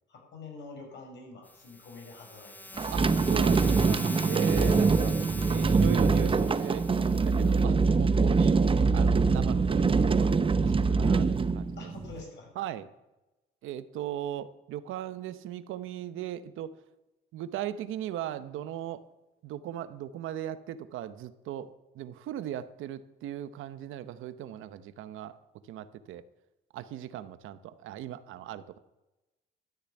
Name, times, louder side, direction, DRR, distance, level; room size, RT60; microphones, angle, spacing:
voice 1, 0.1-3.0 4.6-4.7 11.8-12.5, left 4 dB, 65° left, -1 dB, 6.2 m, -46 dB
sound 1, 1.5-7.6, left 1 dB, 10° left, 0.8 m, -43 dB
sound 2, 2.8-12.2, right 4 dB, 25° right, 0.8 m, -24 dB
voice 2, 2.9-5.1 5.5-8.6 8.9-10.3 10.6-11.9 12.6-12.9 13.6-16.7 17.3-19.0 19.4-25.4 25.7-26.2 26.7-28.8, right 11 dB, 85° right, 14 dB, 0.8 m, -38 dB
12.5 x 6.9 x 9.6 m, 1.0 s
cardioid pair, 90°, 20 cm